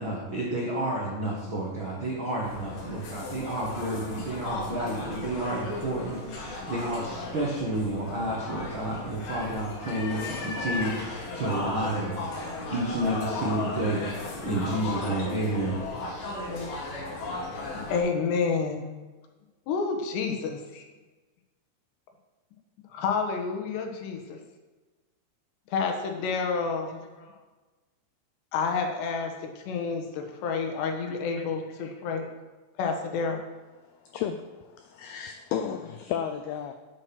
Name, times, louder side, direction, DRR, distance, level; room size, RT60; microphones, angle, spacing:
voice 1, 0.0-17.0, right 1 dB, 75° right, -3 dB, 1.1 m, -31 dB
sound 1, 2.4-18.0, left 2 dB, 55° left, 3.3 m, -35 dB
voice 2, 17.5-18.9 19.7-20.9 22.9-24.4 25.7-27.4 28.5-32.3 32.8-33.4, left 5 dB, 75° left, 3 dB, 3.3 m, -29 dB
voice 3, 34.0-36.7, left 8 dB, 90° left, 7 dB, 2.2 m, -33 dB
9.7 x 9.1 x 6.1 m, 1.2 s
omnidirectional pair, 5.3 m